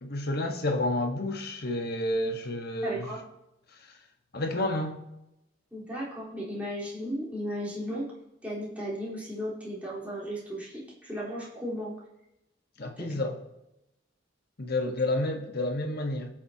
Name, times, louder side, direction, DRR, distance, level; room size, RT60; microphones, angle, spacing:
voice 1, 0.0-3.1 4.3-5.0 12.8-13.4 14.6-16.3, left 1 dB, 55° left, 1.4 m, -30 dB
voice 2, 2.8-3.2 5.7-8.1 8.4-11.9 13.0-13.2, equal, 10° right, 4.0 m, -35 dB
21.0 x 7.4 x 2.9 m
head